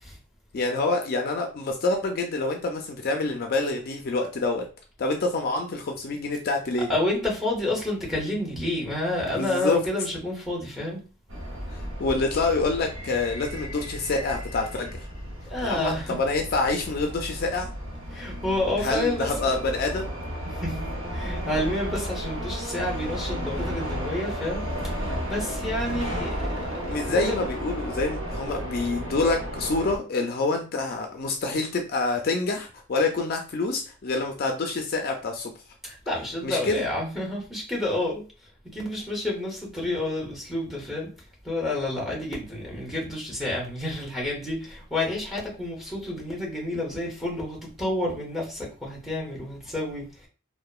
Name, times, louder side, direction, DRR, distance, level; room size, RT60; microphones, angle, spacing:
voice 1, 0.5-4.7 5.0-6.9 9.3-9.8 11.7-15.0 15.6-17.7 18.8-20.1 26.9-35.5 36.4-36.9, left 3 dB, 50° left, 0.3 m, -27 dB
voice 2, 6.8-11.0 15.5-16.2 18.1-19.4 20.4-20.8 21.1-26.4 27.1-27.5 35.8-38.2 38.7-41.1 41.4-50.3, left 1 dB, ahead, 0.8 m, -29 dB
sound 1, 11.3-30.0, equal, 85° right, 0.8 m, -33 dB
2.8 x 2.1 x 2.3 m
head